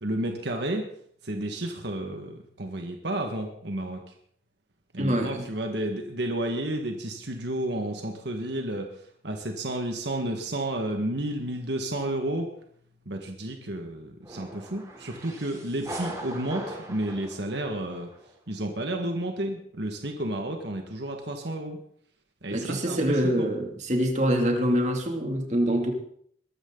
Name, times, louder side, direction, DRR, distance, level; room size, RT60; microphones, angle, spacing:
voice 1, 0.0-0.8 1.2-4.0 4.9-8.9 9.2-12.5 13.1-18.1 18.5-21.8 22.4-23.5, right 1 dB, 70° right, 3 dB, 1.8 m, -31 dB
voice 2, 5.0-5.4 22.5-25.9, equal, 40° right, 2 dB, 2.7 m, -25 dB
sound 1, 14.2-18.3, right 1 dB, 20° right, 3.6 m, -40 dB
22.5 x 13.0 x 4.0 m, 0.64 s
head